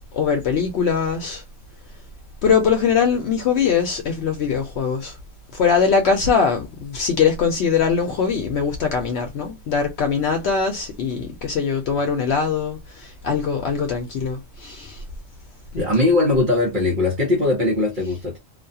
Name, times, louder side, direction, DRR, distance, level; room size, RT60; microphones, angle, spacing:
voice 1, 0.1-1.4 2.4-5.2 5.5-15.0 15.7-16.1, left 6 dB, 70° left, 0.8 m, -22 dB
voice 2, 15.7-18.4, left 2 dB, 45° right, 1.0 m, -20 dB
2.4 x 2.3 x 2.6 m
omnidirectional pair, 1.2 m